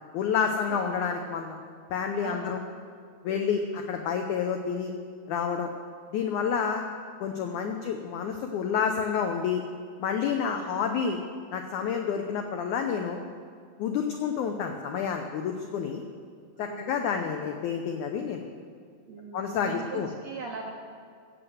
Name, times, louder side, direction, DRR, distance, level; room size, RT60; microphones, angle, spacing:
voice 1, 0.1-1.6 1.9-2.6 3.2-4.9 5.3-5.7 6.1-6.8 7.2-9.6 10.0-11.2 11.5-13.2 13.8-16.0 16.6-18.5 19.3-20.1, left 7 dB, 85° left, 4 dB, 1.7 m, -29 dB
voice 2, 2.2-2.6 3.3-3.8 7.4-7.9 10.4-10.5 13.9-14.2 16.5-16.9 19.1-20.7, right 4 dB, 70° right, -1 dB, 1.7 m, -41 dB
16.0 x 7.7 x 7.8 m, 2.2 s
omnidirectional pair, 4.5 m